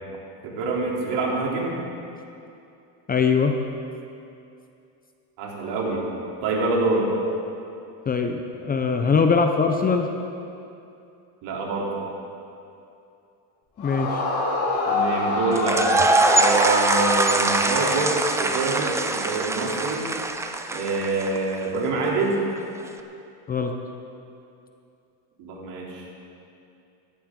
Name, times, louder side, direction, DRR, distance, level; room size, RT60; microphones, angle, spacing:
voice 1, 0.4-1.8 5.4-6.1 6.4-7.1 11.4-11.9 14.9-15.9 16.4-20.1 20.7-22.4 25.4-26.0, right 3 dB, 65° right, -3 dB, 3.4 m, -26 dB
voice 2, 3.1-3.5 8.1-10.1 13.8-14.2 23.5-23.7, left 5 dB, 20° left, 5 dB, 0.7 m, -21 dB
Yell / Screaming, 13.8-18.7, left 3 dB, 80° left, 4.1 m, -26 dB
sound 1, 15.6-21.5, right 2 dB, 5° right, 0.3 m, -23 dB
17.0 x 14.0 x 3.8 m, 2.7 s
cardioid pair, 140°, 44 cm